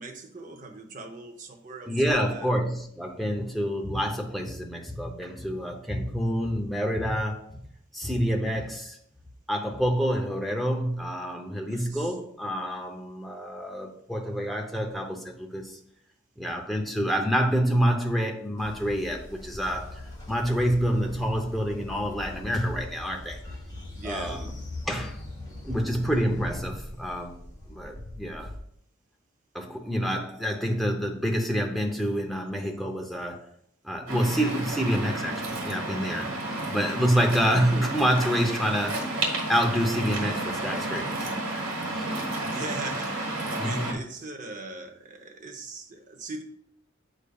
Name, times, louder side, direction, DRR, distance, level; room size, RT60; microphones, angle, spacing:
voice 1, 0.0-2.5 11.7-12.1 23.9-24.4 42.5-43.1 43.5-46.4, right 3 dB, 40° right, 4 dB, 0.7 m, -40 dB
voice 2, 1.9-7.6 7.9-9.0 9.5-15.8 16.4-20.0 20.3-23.4 24.0-24.5 24.8-25.2 25.6-27.4 27.7-28.5 29.5-33.4 33.8-36.3 36.7-39.2 39.5-41.3 41.6-42.1 43.6-44.0, equal, ahead, 1 dB, 0.6 m, -27 dB
Train, 18.6-28.6, left 1 dB, 20° left, 1.4 m, -41 dB
Waves surf, 34.1-43.9, right 2 dB, 80° right, 1.4 m, -31 dB
8.0 x 5.0 x 2.3 m, 0.68 s
head